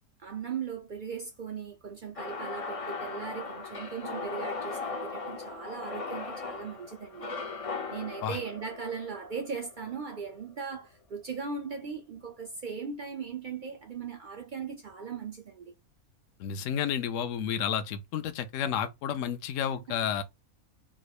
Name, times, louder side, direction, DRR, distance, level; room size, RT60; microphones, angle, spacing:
voice 1, 0.2-7.3 7.9-15.7 20.0-20.2, right 6 dB, 70° right, 0.4 m, -38 dB
sound 1, 2.2-10.3, left 4 dB, 45° left, 0.4 m, -38 dB
voice 2, 16.4-20.2, left 8 dB, 70° left, 0.9 m, -31 dB
3.7 x 3.1 x 2.4 m
omnidirectional pair, 1.5 m